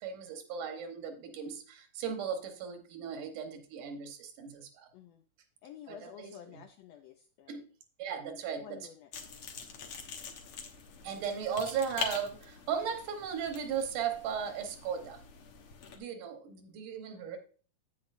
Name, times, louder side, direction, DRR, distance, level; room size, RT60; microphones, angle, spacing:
voice 1, 0.0-4.9 5.9-6.3 7.5-7.7 8.0-8.9 11.0-15.2 16.0-17.4, right 7 dB, 85° right, 5 dB, 2.7 m, -37 dB
voice 2, 4.9-5.2 5.6-7.6 8.6-9.4, left 10 dB, 80° left, 5 dB, 1.5 m, -51 dB
sound 1, 9.1-16.0, left 6 dB, 60° left, 1.5 m, -44 dB
9.6 x 8.6 x 2.6 m, 0.41 s
omnidirectional pair, 3.5 m